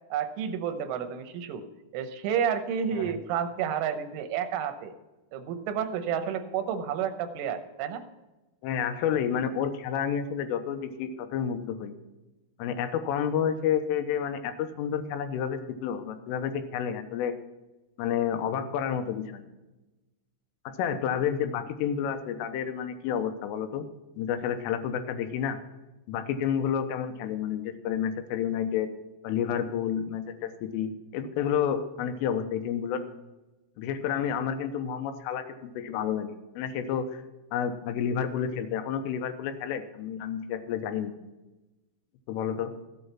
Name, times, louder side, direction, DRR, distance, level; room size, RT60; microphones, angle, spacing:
voice 1, 0.1-1.6 1.9-4.9 5.3-8.0, right 8 dB, 90° right, 8 dB, 3.5 m, -30 dB
voice 2, 8.6-11.9 12.6-17.3 18.0-19.4 20.7-23.9 24.2-25.6 26.1-28.9 29.2-33.0 33.8-37.2 37.5-41.1 42.3-42.7, left 8 dB, 85° left, 8 dB, 3.6 m, -30 dB
15.0 x 8.6 x 5.7 m, 1.1 s
omnidirectional pair, 5.6 m